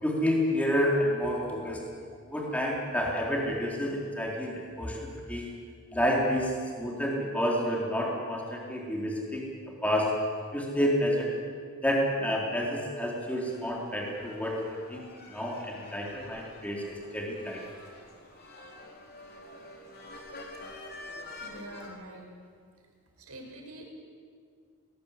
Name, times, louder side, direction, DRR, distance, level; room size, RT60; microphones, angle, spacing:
voice 1, 0.0-1.8 2.3-5.4 5.9-9.5 9.8-10.1 10.5-11.3 11.8-14.6 14.9-15.0 15.3-17.6, equal, 5° left, -2 dB, 4.0 m, -29 dB
sound 1, 13.5-21.9, left 2 dB, 45° left, 4.0 m, -47 dB
voice 2, 21.4-22.3 23.2-23.9, right 1 dB, 90° right, 1 dB, 5.1 m, -45 dB
20.0 x 19.5 x 8.6 m, 2.1 s
head